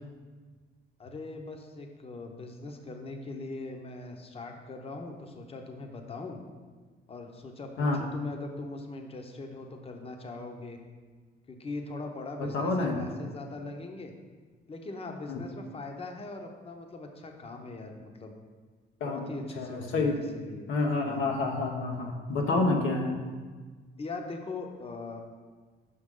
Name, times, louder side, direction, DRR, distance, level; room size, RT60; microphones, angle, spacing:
voice 1, 1.0-6.4 7.1-10.8 11.5-14.1 14.7-18.4 19.0-20.7 21.0-21.3 24.0-25.2, left 3 dB, 30° left, 4 dB, 0.8 m, -41 dB
voice 2, 12.4-13.1 15.3-15.4 19.0-20.2 20.7-23.2, left 3 dB, 90° left, 1 dB, 0.9 m, -29 dB
6.4 x 5.8 x 3.7 m, 1.5 s
cardioid pair, 90°, 20 cm